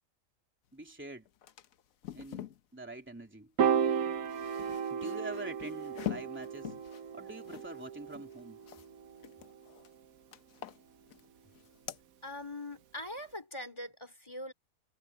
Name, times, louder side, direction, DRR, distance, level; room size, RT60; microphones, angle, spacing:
voice 1, 0.7-1.3 2.1-3.5 4.9-6.7 7.1-8.6, right 2 dB, 10° right, 2.9 m, -45 dB
sound 1, 0.9-1.0 1.3-2.6 4.0-8.9 9.2-9.9 10.3-11.3 11.5-12.0, left 12 dB, 75° left, 1.2 m, -45 dB
Piano, 3.6-10.0, right 7 dB, 80° right, 1.4 m, -34 dB
voice 2, 12.2-14.5, left 1 dB, 20° left, 3.9 m, -42 dB
omnidirectional pair, 1.5 m